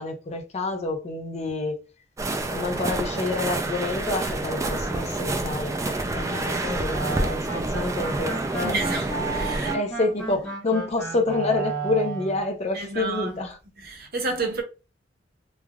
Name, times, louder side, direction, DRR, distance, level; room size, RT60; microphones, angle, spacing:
voice 1, 0.0-1.8 2.5-9.0 9.7-13.6, left 3 dB, 35° left, 0.5 m, -28 dB
sound 1, 2.2-9.8, right 2 dB, 15° right, 0.3 m, -28 dB
sound 2, 6.9-12.4, right 4 dB, 5° left, 0.9 m, -33 dB
voice 2, 8.6-9.7 12.7-13.4 13.8-14.6, right 3 dB, 55° right, 0.6 m, -30 dB
3.1 x 2.3 x 2.3 m
head